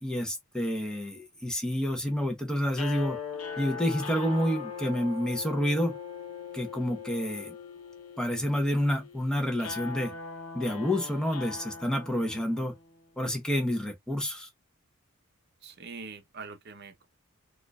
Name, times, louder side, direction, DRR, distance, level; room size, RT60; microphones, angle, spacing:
voice 1, 0.0-3.2 3.6-6.0 6.5-7.6 8.2-10.1 10.5-12.8 13.2-14.5, equal, 5° left, 0.8 m, -29 dB
sound 1, 2.7-12.9, left 5 dB, 85° left, 0.8 m, -40 dB
voice 2, 15.6-17.1, right 4 dB, 50° right, 0.8 m, -43 dB
4.4 x 2.5 x 2.3 m
head